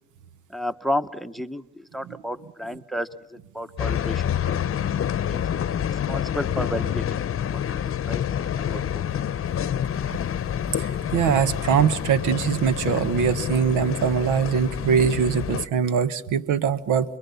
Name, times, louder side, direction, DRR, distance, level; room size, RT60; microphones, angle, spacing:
voice 1, 0.5-4.6 4.8-5.4 5.9-7.2 7.5-7.6 8.0-9.0, equal, ahead, 14 dB, 0.9 m, -32 dB
sound 1, 3.8-15.7, left 9 dB, 45° left, 0.8 m, -27 dB
voice 2, 10.7-17.2, right 7 dB, 90° right, 15 dB, 1.1 m, -22 dB
29.5 x 22.0 x 7.0 m, 0.85 s
cardioid pair, 90°, 30 cm